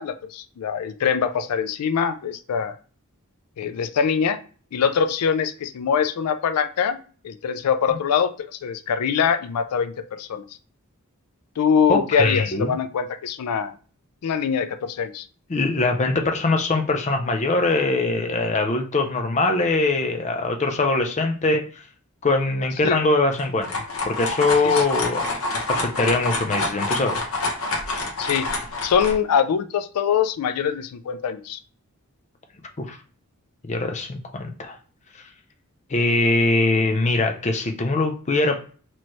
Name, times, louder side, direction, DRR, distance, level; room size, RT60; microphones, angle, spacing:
voice 1, 0.0-2.8 3.6-4.4 4.7-7.0 7.2-10.4 11.6-13.7 14.2-15.3 22.8-23.0 24.6-24.8 28.2-28.5 28.8-31.6, left 7 dB, 90° left, 11 dB, 0.4 m, -23 dB
voice 2, 11.9-12.7 15.5-21.8 22.2-23.7 24.1-25.4 25.7-27.2 32.8-33.0 33.7-34.8 35.9-38.6, left 2 dB, 30° left, 5 dB, 0.5 m, -22 dB
sound 1, 23.3-29.2, left 2 dB, 65° left, 1.0 m, -27 dB
4.4 x 3.0 x 3.0 m, 0.40 s
head